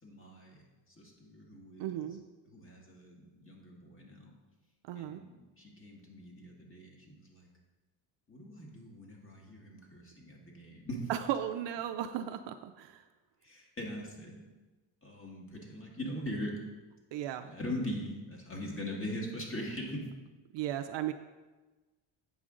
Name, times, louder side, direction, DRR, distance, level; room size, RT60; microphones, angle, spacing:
voice 1, 0.0-2.1 2.4-4.3 4.9-7.5 8.3-11.1 13.4-14.4 15.0-16.6 17.4-20.0, equal, 25° left, -1 dB, 1.7 m, -41 dB
voice 2, 1.8-2.2 4.8-5.2 11.1-13.0 17.1-17.5 20.5-21.1, right 11 dB, 60° right, 8 dB, 0.5 m, -35 dB
7.7 x 5.1 x 3.7 m, 1.2 s
cardioid pair, 105°, 49 cm